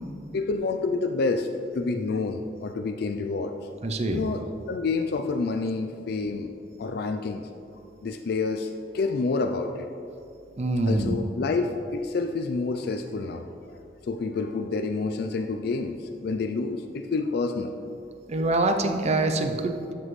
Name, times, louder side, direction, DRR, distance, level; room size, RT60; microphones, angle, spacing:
voice 1, 0.3-1.5 1.7-3.5 4.1-6.5 6.8-7.4 8.0-9.9 10.9-13.5 14.0-17.7, left 3 dB, 60° left, 5 dB, 0.4 m, -28 dB
voice 2, 3.8-4.2 10.6-11.2 18.3-19.9, right 2 dB, 40° right, 6 dB, 0.6 m, -25 dB
12.5 x 6.0 x 3.2 m, 2.7 s
head